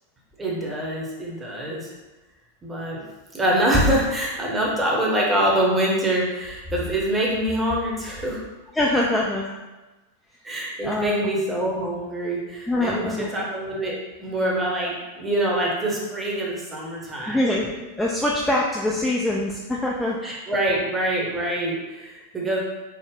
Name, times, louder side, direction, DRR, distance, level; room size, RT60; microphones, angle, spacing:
voice 1, 0.4-1.9 2.6-3.0 3.3-8.4 10.4-17.4 18.9-19.0 20.2-22.6, right 1 dB, 15° right, -3 dB, 0.9 m, -25 dB
voice 2, 8.7-9.5 10.8-11.3 12.7-13.3 17.3-20.4, left 1 dB, 5° left, -4 dB, 0.3 m, -24 dB
3.6 x 2.0 x 3.6 m, 1.1 s
figure-of-eight pair, 90°, 0 cm